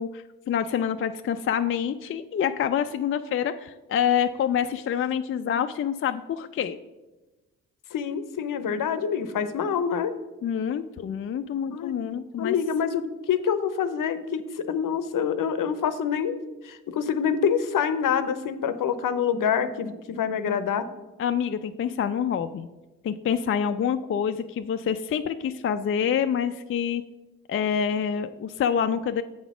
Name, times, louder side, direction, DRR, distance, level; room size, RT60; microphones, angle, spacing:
voice 1, 0.0-6.8 10.4-12.5 21.2-22.7 23.0-27.0 27.5-29.2, left 8 dB, 35° left, 8 dB, 0.4 m, -27 dB
voice 2, 7.9-10.1 11.7-11.9 12.4-16.4 16.6-20.9, left 7 dB, 60° left, 11 dB, 0.7 m, -26 dB
7.8 x 4.1 x 6.0 m, 1.1 s
supercardioid pair, 55°, 37 cm